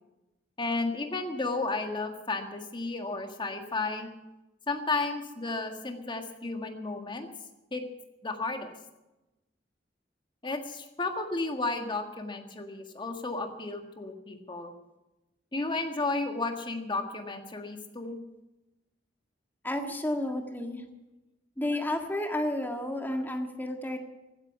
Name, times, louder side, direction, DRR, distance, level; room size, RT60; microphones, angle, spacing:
voice 1, 0.6-4.1 4.7-7.3 7.7-7.8 8.2-8.7 10.4-14.7 15.5-18.2, left 3 dB, 25° left, 5 dB, 1.7 m, -33 dB
voice 2, 19.6-20.8 21.6-24.0, left 1 dB, 10° left, 4 dB, 1.7 m, -31 dB
15.5 x 9.8 x 8.3 m, 1.0 s
head